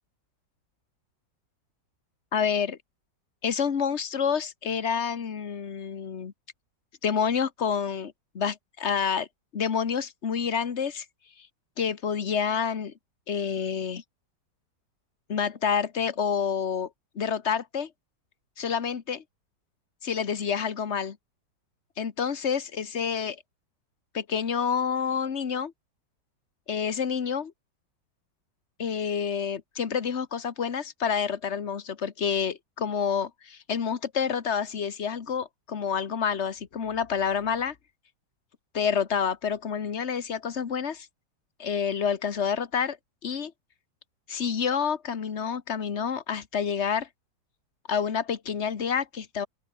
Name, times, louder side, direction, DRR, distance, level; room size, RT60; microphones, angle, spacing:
voice 1, 2.3-2.8 3.4-6.3 7.0-9.3 9.5-11.0 11.8-12.9 13.3-14.0 15.3-16.9 17.1-17.9 18.6-19.2 20.0-21.2 22.0-23.4 24.1-25.7 26.7-27.5 28.8-37.7 38.7-41.1 41.6-43.0 43.2-43.5 44.3-47.1 47.9-49.5, left 7 dB, 40° left, 1.5 m, -28 dB
open air
omnidirectional pair, 1.9 m